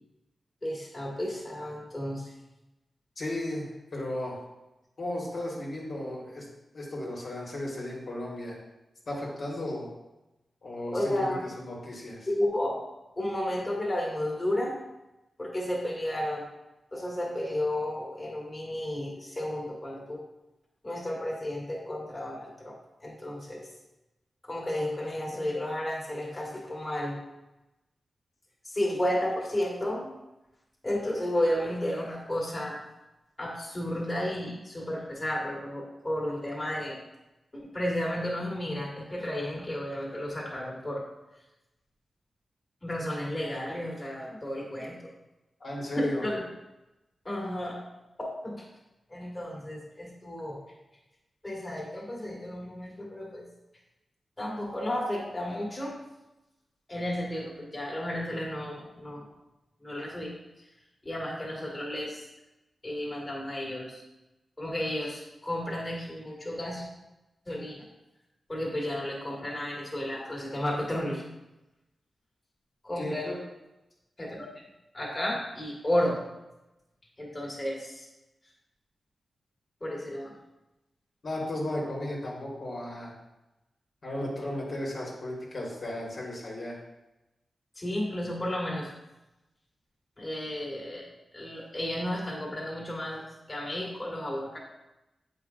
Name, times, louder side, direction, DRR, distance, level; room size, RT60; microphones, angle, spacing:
voice 1, 0.6-2.3 10.9-11.4 12.3-12.8 13.2-14.8 15.4-16.4 16.9-20.2 20.8-23.7 24.4-27.2 28.6-30.1 30.8-32.8 33.4-37.0 37.5-41.0 42.8-45.1 46.0-46.4 47.3-47.8 48.2-48.6 49.1-50.6 51.4-53.4 54.4-55.9 56.9-59.3 59.8-60.3 61.0-62.3 62.8-64.0 64.6-66.9 67.5-67.8 68.5-71.2 72.8-73.3 74.2-74.5 74.9-76.2 77.2-78.1 79.8-80.4 87.8-88.9 90.2-91.1 91.3-93.2 93.5-94.6, left 1 dB, 25° left, -4 dB, 1.8 m, -32 dB
voice 2, 3.2-4.4 5.0-6.4 6.7-8.6 9.1-9.9 10.6-12.3 45.6-46.2 73.0-73.4 81.2-83.2 84.0-86.8, left 1 dB, 60° left, -4 dB, 1.7 m, -35 dB
7.9 x 5.0 x 2.5 m, 0.97 s
wide cardioid pair, 85°, 0 cm